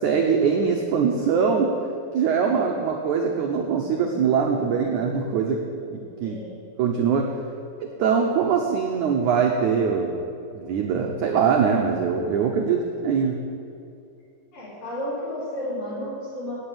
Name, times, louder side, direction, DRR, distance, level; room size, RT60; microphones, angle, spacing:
voice 1, 0.0-1.7 2.1-5.6 5.9-6.4 6.8-7.3 7.8-10.2 10.5-13.4, right 6 dB, 85° right, 1 dB, 1.7 m, -22 dB
voice 2, 6.2-6.6 14.5-16.6, equal, 55° left, -10 dB, 4.9 m, -32 dB
10.0 x 8.8 x 9.2 m, 2.5 s
omnidirectional pair, 4.7 m